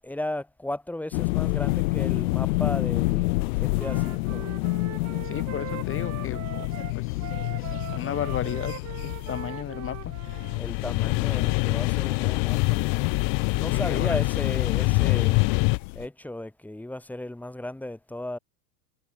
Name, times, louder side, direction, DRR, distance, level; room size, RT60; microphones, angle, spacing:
voice 1, 0.0-4.5 10.5-12.9 13.6-15.5 15.9-18.4, left 1 dB, 5° left, 2.1 m, -35 dB
sound 1, 1.1-16.1, left 24 dB, 60° left, 1.3 m, -29 dB
Wind instrument woodwind instrument, 3.8-10.6, right 13 dB, 30° right, 2.9 m, -41 dB
voice 2, 5.2-10.2 13.7-14.2, left 10 dB, 25° left, 2.9 m, -35 dB
sound 2, 10.2-15.8, left 34 dB, 45° left, 1.0 m, -24 dB
supercardioid pair, 135°, 49 cm